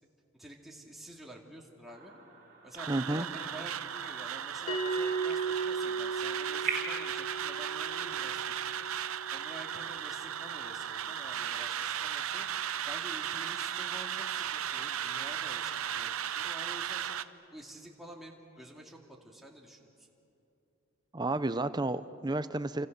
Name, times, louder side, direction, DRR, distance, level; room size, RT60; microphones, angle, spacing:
voice 1, 0.4-2.1 2.6-8.4 8.8-8.9 9.3-12.5 12.9-17.2 17.5-20.1, right 1 dB, ahead, -2 dB, 2.4 m, -49 dB
sound 1, 1.9-7.1, right 4 dB, 40° right, 3.5 m, -43 dB
sound 2, 2.8-17.2, right 9 dB, 75° right, 0.7 m, -36 dB
voice 2, 2.9-3.3 21.1-22.9, right 2 dB, 20° right, 12 dB, 0.6 m, -31 dB
Bell, 4.7-9.7, right 4 dB, 70° left, 2.2 m, -36 dB
29.0 x 26.0 x 6.7 m, 2.8 s
head